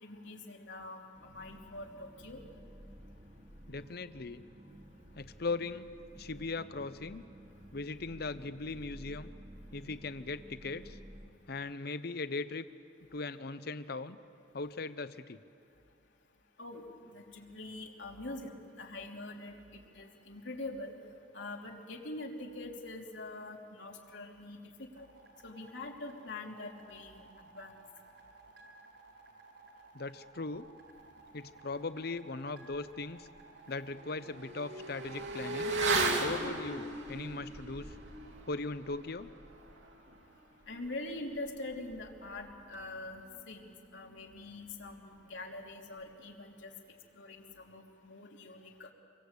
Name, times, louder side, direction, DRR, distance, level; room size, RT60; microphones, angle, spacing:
voice 1, 0.0-2.4 16.6-20.9 21.3-25.1 25.4-27.7 40.7-46.7 47.1-48.9, left 2 dB, 85° left, 0 dB, 3.3 m, -44 dB
sound 1, 1.1-11.3, equal, 35° right, 1.5 m, -53 dB
voice 2, 3.7-4.4 5.2-5.9 6.2-7.2 7.7-9.3 9.7-11.0 11.5-12.6 13.1-14.2 14.5-15.4 29.9-30.7 31.3-33.3 33.7-35.8 36.2-37.9 38.5-39.3, left 3 dB, 55° left, 13 dB, 0.8 m, -39 dB
sound 2, 25.0-36.3, right 3 dB, 70° right, 4.4 m, -57 dB
Motorcycle / Accelerating revving vroom, 32.7-32.8 33.2-43.2 43.5-43.6, right 2 dB, 85° right, 3.2 m, -37 dB
27.0 x 23.5 x 8.3 m, 2.5 s
head